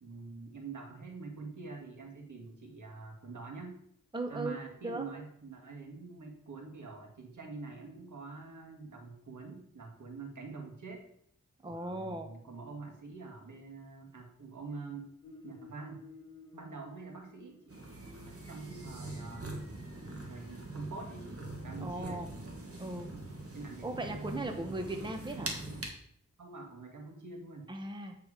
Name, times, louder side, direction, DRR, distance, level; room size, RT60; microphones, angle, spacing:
voice 1, 0.0-3.8 4.3-11.1 11.6-15.1 15.4-16.0 16.5-17.8 18.3-19.5 20.3-22.3 23.1-24.9 26.4-27.7, right 4 dB, 70° right, 1 dB, 1.8 m, -46 dB
voice 2, 4.1-4.6 4.8-5.1 11.6-12.3 21.8-22.3 22.8-23.1 23.8-25.5 27.7-28.2, right 2 dB, 15° right, 4 dB, 0.9 m, -37 dB
sound 1, 15.2-18.2 19.2-20.4, left 4 dB, 15° left, 2.5 m, -55 dB
sound 2, 17.7-25.9, right 2 dB, 45° right, 1.7 m, -43 dB
8.5 x 4.7 x 4.9 m, 0.68 s
wide cardioid pair, 85°, 32 cm